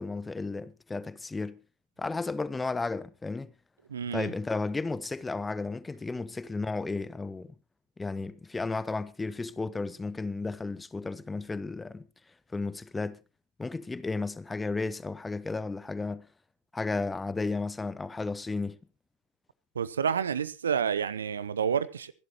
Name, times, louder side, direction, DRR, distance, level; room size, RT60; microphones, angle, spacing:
voice 1, 0.0-1.6 2.0-3.5 4.1-7.5 8.0-12.1 12.5-13.2 13.6-16.3 16.7-18.8, left 3 dB, 15° left, 0.8 m, -33 dB
voice 2, 3.9-4.3 19.8-22.1, right 7 dB, 70° right, 0.6 m, -29 dB
24.5 x 11.5 x 3.0 m
figure-of-eight pair, 80°, 0 cm